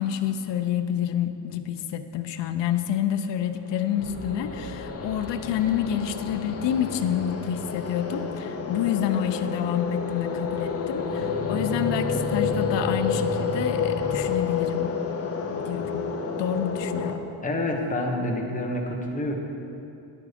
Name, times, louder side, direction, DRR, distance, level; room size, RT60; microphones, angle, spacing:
voice 1, 0.0-14.9 15.6-16.1 16.4-17.2, left 9 dB, 70° left, 8 dB, 0.7 m, -28 dB
sound 1, 3.6-17.2, left 6 dB, 35° left, 0.6 m, -30 dB
sound 2, 4.0-14.4, right 2 dB, 15° right, 0.9 m, -37 dB
voice 2, 17.4-19.4, left 1 dB, 20° left, 0 dB, 1.0 m, -27 dB
11.0 x 8.6 x 5.1 m, 2.8 s
cardioid pair, 175°, 44 cm